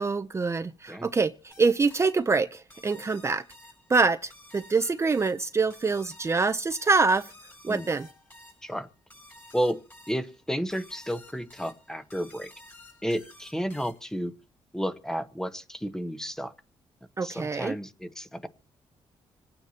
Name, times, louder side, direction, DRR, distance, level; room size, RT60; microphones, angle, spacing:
voice 1, 0.0-3.4 3.9-7.3 7.6-8.1 17.2-17.7, right 4 dB, 25° right, 0.6 m, -25 dB
sound 1, 1.5-14.3, left 1 dB, 20° left, 3.9 m, -53 dB
voice 2, 9.5-12.5 13.0-14.3 14.7-16.5 17.2-18.5, equal, 5° left, 1.0 m, -32 dB
26.5 x 9.1 x 2.9 m
cardioid pair, 95°, 10 cm